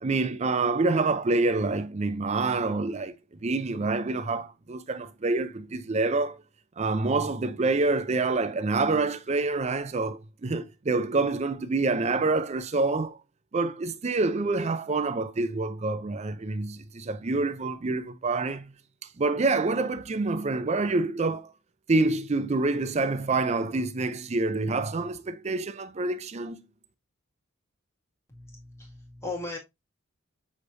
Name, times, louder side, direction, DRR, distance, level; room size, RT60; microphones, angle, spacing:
voice 1, 0.0-3.1 3.4-6.4 6.8-13.2 13.5-18.7 19.2-21.5 21.9-26.6, right 3 dB, 30° right, 0.4 m, -27 dB
voice 2, 28.3-29.6, left 3 dB, 15° left, 1.7 m, -37 dB
6.4 x 3.2 x 2.5 m
head